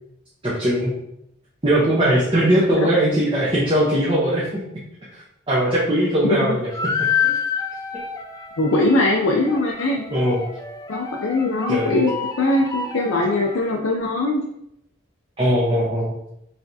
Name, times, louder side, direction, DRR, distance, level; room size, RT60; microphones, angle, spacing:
voice 1, 0.4-0.9 1.6-4.6 5.1-6.7 7.2-7.3 10.1-10.4 11.7-12.0 15.4-16.1, right 1 dB, 25° right, -7 dB, 0.8 m, -20 dB
irish folk riff, 6.7-13.8, left 6 dB, 15° left, 0.3 m, -28 dB
voice 2, 8.6-10.0 10.9-14.4, left 2 dB, 75° left, 0 dB, 0.5 m, -21 dB
4.7 x 3.3 x 2.7 m, 0.78 s
head